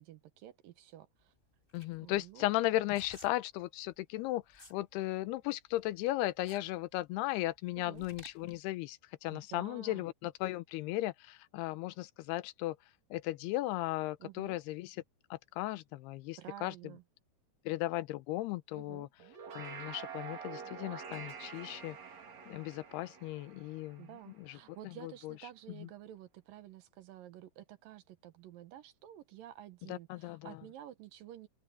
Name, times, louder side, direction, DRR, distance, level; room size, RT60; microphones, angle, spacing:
voice 1, 0.0-1.3 2.0-2.5 7.8-8.1 9.3-10.1 14.2-14.6 16.4-17.0 18.8-19.1 24.0-31.5, right 12 dB, 70° right, 2.5 m, -51 dB
sound 1, 1.2-4.8 5.2-8.6, left 1 dB, 10° left, 8.1 m, -56 dB
voice 2, 1.7-12.8 13.1-15.0 15.3-16.7 17.7-19.1 19.5-22.0 22.5-24.1 24.4-24.6 25.0-25.3 25.8-25.9 29.9-30.6, left 17 dB, 90° left, 2.8 m, -36 dB
sound 2, 19.2-24.7, right 6 dB, 50° right, 3.3 m, -47 dB
open air
omnidirectional pair, 4.5 m